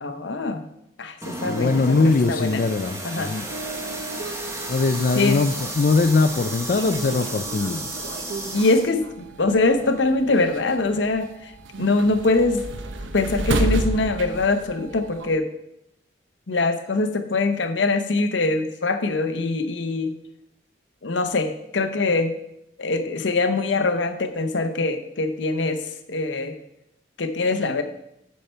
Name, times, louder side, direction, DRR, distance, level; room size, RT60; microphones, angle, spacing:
voice 1, 0.0-0.6 1.0-2.6 3.0-3.4 5.1-5.4 8.5-11.5 11.8-12.7 13.1-15.5 16.5-20.1 21.0-22.3 22.8-25.8 26.1-26.5 27.2-27.8, left 3 dB, 80° left, 8 dB, 0.8 m, -23 dB
sound 1, 1.2-8.9, right 1 dB, 15° right, 1.0 m, -33 dB
voice 2, 1.4-3.4 4.7-8.0, left 3 dB, 50° left, 7 dB, 0.4 m, -21 dB
sound 2, 3.4-15.4, right 2 dB, 90° right, 0.7 m, -33 dB
8.5 x 5.7 x 4.4 m, 0.80 s
head